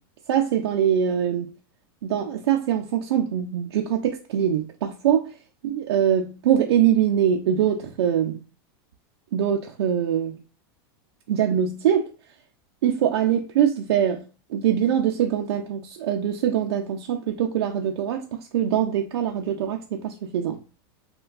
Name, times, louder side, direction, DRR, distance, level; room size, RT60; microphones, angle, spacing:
voice 1, 0.3-1.5 2.0-5.3 5.6-8.4 9.3-10.4 11.3-12.1 12.8-14.2 14.5-20.6, right 9 dB, 90° right, 0.4 m, -23 dB
3.3 x 2.2 x 2.3 m
supercardioid pair, 145°, 13 cm